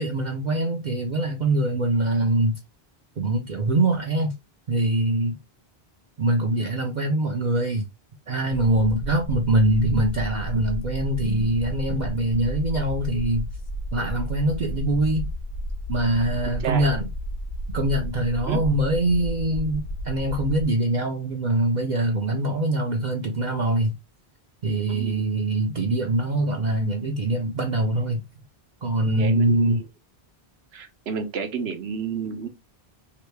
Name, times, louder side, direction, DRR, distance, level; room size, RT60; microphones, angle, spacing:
voice 1, 0.0-2.6 3.2-4.3 4.7-5.4 6.2-7.9 8.3-13.5 13.9-15.3 15.9-17.1 17.7-23.9 24.6-28.2 28.8-29.8, right 1 dB, 50° right, 0.7 m, -23 dB
sound 1, 11.8-20.6, equal, 50° left, 0.8 m, -32 dB
voice 2, 24.9-25.2 29.2-29.8 30.7-32.5, right 6 dB, 80° right, 1.0 m, -31 dB
3.0 x 2.6 x 3.2 m
omnidirectional pair, 1.1 m